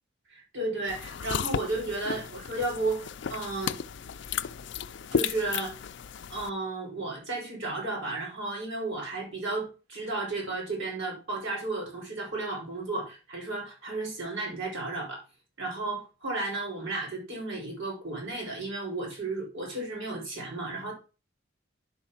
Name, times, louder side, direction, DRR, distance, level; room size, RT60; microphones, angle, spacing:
voice 1, 0.3-3.8 5.1-5.8 6.3-15.2 15.6-20.9, right 2 dB, 85° right, -2 dB, 5.2 m, -33 dB
sound 1, 0.9-6.5, left 6 dB, 65° left, 0.4 m, -34 dB
11.0 x 4.5 x 5.8 m, 0.33 s
head